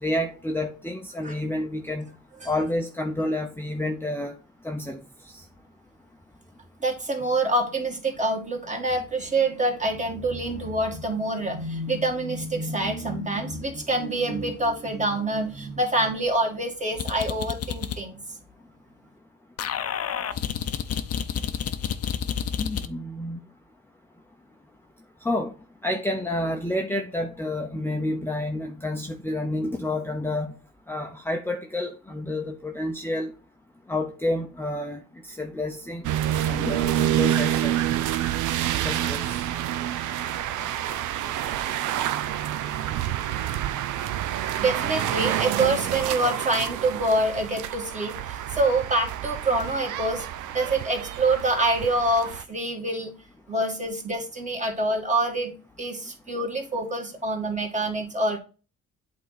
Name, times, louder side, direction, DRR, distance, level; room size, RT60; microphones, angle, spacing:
voice 1, 0.0-2.2 2.5-4.3 4.6-5.0 5.3-5.4 22.6-23.4 25.2-25.5 25.8-30.6 30.9-33.3 33.9-36.0 36.5-37.8 38.8-39.5, left 1 dB, 5° left, 3 dB, 0.7 m, -29 dB
voice 2, 6.8-18.2 44.6-50.2 50.5-53.1 53.5-55.5 55.8-58.4, right 2 dB, 25° right, 3 dB, 1.8 m, -26 dB
sound 1, 17.0-18.0 19.6-22.9, left 8 dB, 55° left, 0.7 m, -30 dB
sound 2, 36.0-52.4, right 12 dB, 80° right, 0.6 m, -28 dB
8.3 x 3.7 x 4.0 m, 0.35 s
cardioid pair, 90°, 30 cm